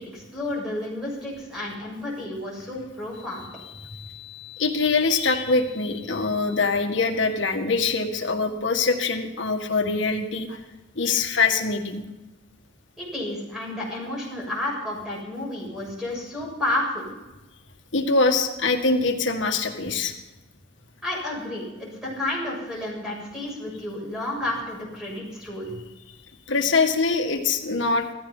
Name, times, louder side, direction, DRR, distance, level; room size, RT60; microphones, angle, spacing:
voice 1, 0.0-3.5 13.0-17.1 21.0-25.8, left 1 dB, 5° right, -3 dB, 7.2 m, -31 dB
voice 2, 3.8-10.6 11.0-12.0 17.9-20.1 26.5-28.1, left 4 dB, 70° left, 4 dB, 1.8 m, -24 dB
17.0 x 14.5 x 5.6 m, 1.1 s
head